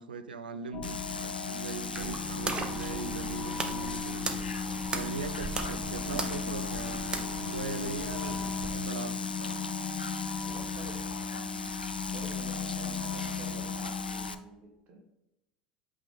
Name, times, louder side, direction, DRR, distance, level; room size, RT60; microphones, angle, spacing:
voice 1, 0.0-4.4 4.9-9.6, right 4 dB, 75° right, 11 dB, 0.5 m, -40 dB
sound 1, 0.7-14.3, left 5 dB, 40° left, 1.0 m, -37 dB
sound 2, 0.8-14.3, left 4 dB, 85° left, 0.4 m, -40 dB
sound 3, 1.9-8.8, right 3 dB, 20° right, 0.8 m, -38 dB
voice 2, 10.4-15.0, right 2 dB, 40° right, 2 dB, 1.4 m, -49 dB
8.3 x 3.6 x 3.4 m, 0.91 s
figure-of-eight pair, 75°, 5 cm